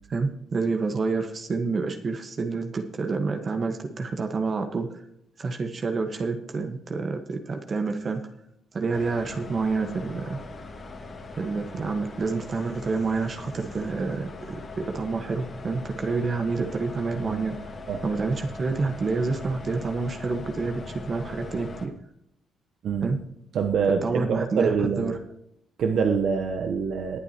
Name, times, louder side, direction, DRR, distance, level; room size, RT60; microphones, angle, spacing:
voice 1, 0.1-5.0 5.4-8.2 8.7-10.4 11.4-17.5 18.0-21.9 23.0-23.2 24.0-25.2, right 4 dB, 40° right, 5 dB, 1.4 m, -28 dB
sound 1, 8.9-21.9, left 3 dB, 40° left, 2.2 m, -40 dB
voice 2, 23.5-25.1 25.8-27.2, right 6 dB, 70° right, 4 dB, 1.0 m, -25 dB
20.0 x 8.3 x 3.0 m, 0.76 s
cardioid pair, 90°, 0 cm